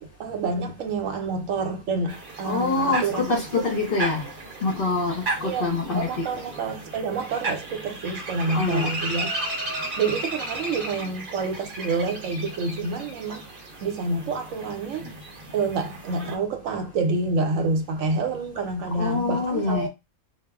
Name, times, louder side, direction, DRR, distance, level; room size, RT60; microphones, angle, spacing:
voice 1, 0.0-3.3 5.4-5.7 5.9-9.5 10.0-15.1 15.5-19.9, right 3 dB, 75° right, 1.0 m, -28 dB
sound 1, 2.1-16.4, right 2 dB, 45° right, 0.8 m, -35 dB
voice 2, 2.4-4.3 4.6-6.3 8.5-8.9 19.0-19.9, left 3 dB, 55° left, 0.7 m, -25 dB
2.3 x 2.0 x 3.5 m
omnidirectional pair, 1.4 m